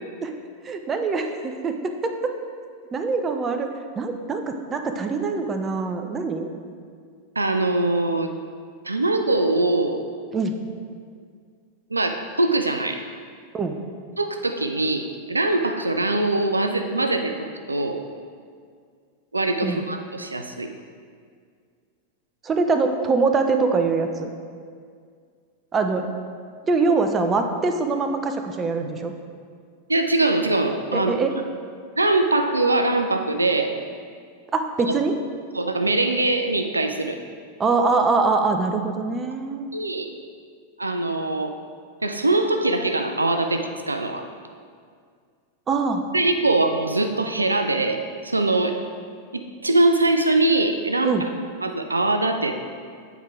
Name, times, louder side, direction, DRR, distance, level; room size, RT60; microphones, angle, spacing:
voice 1, 0.6-2.3 2.9-3.7 4.0-6.5 10.3-10.5 13.5-13.8 19.6-19.8 22.4-24.3 25.7-26.1 26.7-29.1 30.9-31.3 34.5-35.2 37.6-39.7 45.7-46.0 51.0-51.3, right 4 dB, 20° right, 6 dB, 0.5 m, -23 dB
voice 2, 7.4-8.3 8.8-10.0 11.9-13.1 14.2-17.4 17.7-18.0 19.3-20.7 29.9-31.2 32.0-33.8 34.8-34.9 35.5-37.2 39.7-40.1 40.8-41.6 42.0-44.3 46.1-48.8 49.3-51.3 51.6-52.6, right 2 dB, 80° right, 6 dB, 0.4 m, -22 dB
8.2 x 4.5 x 3.5 m, 2.1 s
figure-of-eight pair, 90°, 0 cm